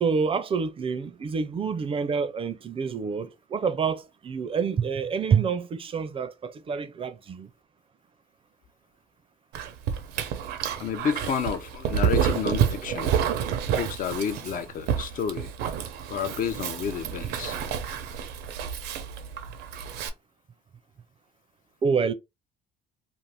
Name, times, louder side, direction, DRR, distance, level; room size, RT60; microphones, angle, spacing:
voice 1, 0.0-7.5 21.8-22.1, right 6 dB, 35° right, 0.4 m, -27 dB
Dog, 9.5-20.1, right 8 dB, 90° right, 0.6 m, -29 dB
voice 2, 10.8-13.1 13.8-15.5 15.8-17.6, left 7 dB, 55° left, 0.5 m, -30 dB
2.6 x 2.4 x 3.3 m
cardioid pair, 110°, 17 cm